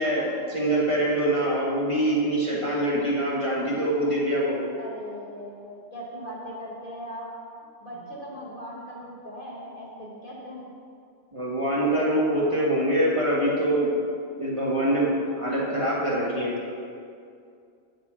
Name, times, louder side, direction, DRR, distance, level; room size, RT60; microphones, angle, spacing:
voice 1, 0.0-4.6 11.3-13.9 14.4-16.5, right 1 dB, 25° right, -7 dB, 1.4 m, -24 dB
voice 2, 4.8-7.3 7.8-10.6, equal, 45° left, -4 dB, 1.4 m, -39 dB
8.5 x 4.0 x 6.0 m, 2.4 s
omnidirectional pair, 1.3 m